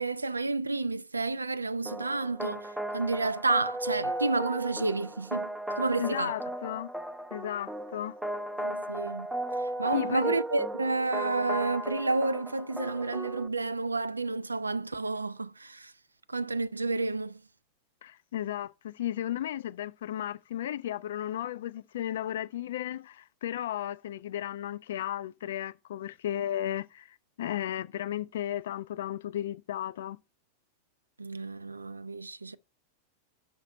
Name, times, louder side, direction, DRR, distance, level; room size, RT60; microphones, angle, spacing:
voice 1, 0.0-6.3 8.6-9.3 9.8-15.9 16.3-17.4 31.2-32.6, right 3 dB, 80° right, 0.3 m, -30 dB
sound 1, 1.8-13.5, right 1 dB, 5° right, 0.5 m, -36 dB
voice 2, 6.0-6.9 7.3-8.1 9.9-10.3 18.0-30.2, left 11 dB, 60° left, 0.3 m, -34 dB
5.8 x 5.0 x 6.2 m
figure-of-eight pair, 90°, 0 cm